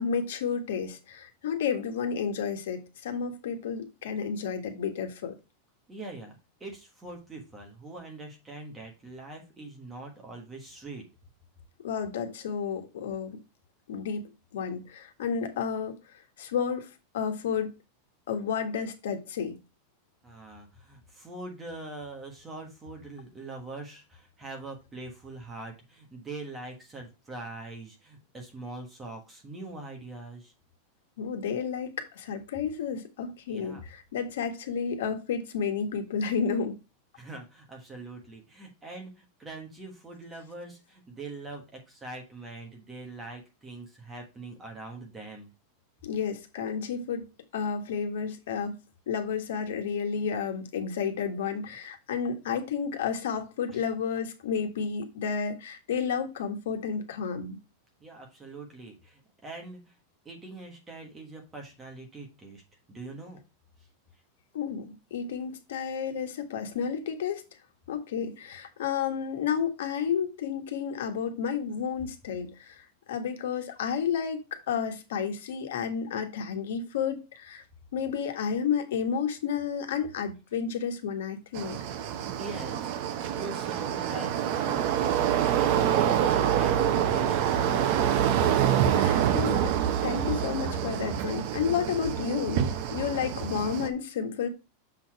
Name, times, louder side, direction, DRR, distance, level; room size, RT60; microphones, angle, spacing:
voice 1, 0.0-5.3 11.8-13.4 13.9-14.2 14.5-17.7 18.3-19.6 31.2-36.8 46.0-47.3 47.5-48.7 49.1-57.6 64.5-67.4 67.9-77.6 77.9-81.8 88.6-89.7 90.0-92.6 92.9-94.5, left 6 dB, 80° left, 1.4 m, -31 dB
voice 2, 5.9-6.3 6.6-11.0 20.2-30.5 33.5-33.8 37.1-45.5 53.7-53.8 58.0-59.9 60.2-62.6 62.9-63.4 82.4-82.9 83.3-89.1 89.9-90.4, right 2 dB, 10° right, 1.4 m, -43 dB
sound 1, 81.5-93.9, right 9 dB, 40° right, 0.7 m, -26 dB
6.9 x 4.1 x 4.6 m
supercardioid pair, 180°, 0 cm